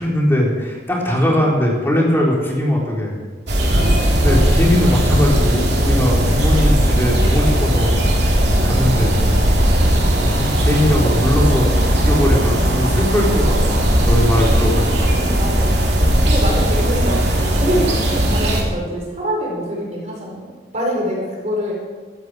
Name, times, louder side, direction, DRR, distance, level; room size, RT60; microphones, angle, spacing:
voice 1, 0.0-3.2 4.2-8.0 8.6-9.2 9.6-15.2, left 1 dB, 15° left, -3 dB, 3.7 m, -20 dB
sound 1, 3.5-18.6, equal, 70° right, 3.1 m, -17 dB
voice 2, 3.7-4.5 6.2-6.4 8.4-8.7 9.7-9.9 15.1-15.8 16.2-20.4 20.7-21.7, equal, 40° right, -2 dB, 4.9 m, -25 dB
15.5 x 13.5 x 4.8 m, 1.4 s
head